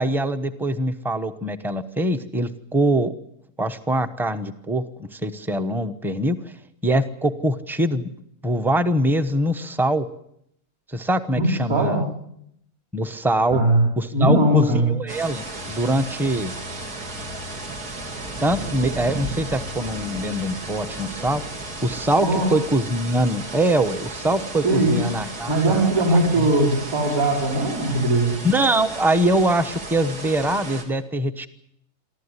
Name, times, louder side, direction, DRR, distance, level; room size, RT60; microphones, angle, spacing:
voice 1, 0.0-3.1 3.6-6.4 6.8-8.1 8.4-10.1 10.9-12.0 12.9-13.6 14.0-16.5 18.4-21.4 21.8-26.5 28.4-31.5, right 1 dB, ahead, 9 dB, 0.7 m, -23 dB
voice 2, 11.4-12.0 13.5-13.8 14.1-14.9 22.2-22.5 24.6-25.0 25.5-28.3, right 1 dB, 60° right, -3 dB, 5.6 m, -20 dB
sound 1, 15.1-30.8, right 2 dB, 75° right, 3.5 m, -34 dB
24.0 x 14.5 x 9.8 m, 0.73 s
omnidirectional pair, 1.7 m